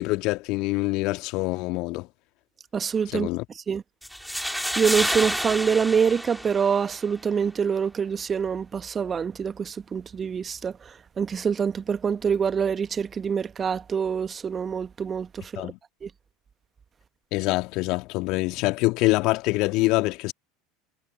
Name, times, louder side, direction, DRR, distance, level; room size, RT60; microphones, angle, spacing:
voice 1, 0.0-2.1 3.1-3.4 15.6-15.8 17.3-20.3, left 22 dB, 55° left, 2.4 m, -25 dB
voice 2, 2.7-3.3 3.5-3.8 4.7-15.7 16.0-16.1, right 6 dB, 30° right, 1.3 m, -26 dB
sound 1, 4.0-7.0, equal, ahead, 4.1 m, -29 dB
figure-of-eight pair, 75°, 0 cm